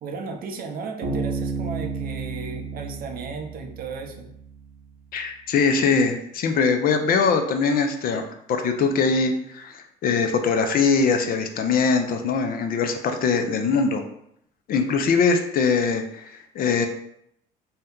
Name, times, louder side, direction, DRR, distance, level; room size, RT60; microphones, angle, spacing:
voice 1, 0.0-4.3, right 4 dB, 50° right, 4 dB, 0.5 m, -35 dB
Bass guitar, 1.0-4.5, right 4 dB, 75° right, 0.9 m, -31 dB
voice 2, 5.1-8.2 8.5-14.0 14.7-16.9, left 5 dB, 50° left, 6 dB, 0.5 m, -22 dB
2.7 x 2.2 x 3.6 m, 0.73 s
supercardioid pair, 80°, 19 cm